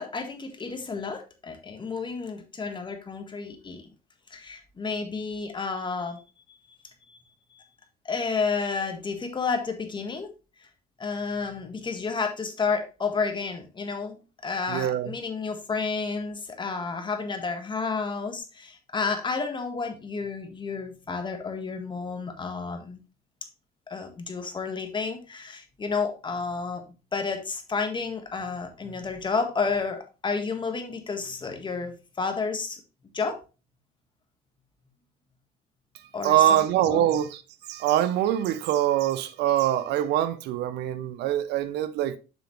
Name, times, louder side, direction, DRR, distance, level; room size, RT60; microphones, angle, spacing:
voice 1, 0.0-3.8 4.3-6.2 7.1-7.2 8.0-10.3 11.0-14.2 14.4-23.0 23.9-26.8 27.1-32.8 33.1-33.4 36.1-37.1, left 4 dB, 30° left, 1.5 m, -31 dB
voice 2, 14.7-15.1 36.2-37.4 37.7-42.2, right 12 dB, 80° right, 0.7 m, -24 dB
7.0 x 6.0 x 3.1 m
cardioid pair, 110°, 17 cm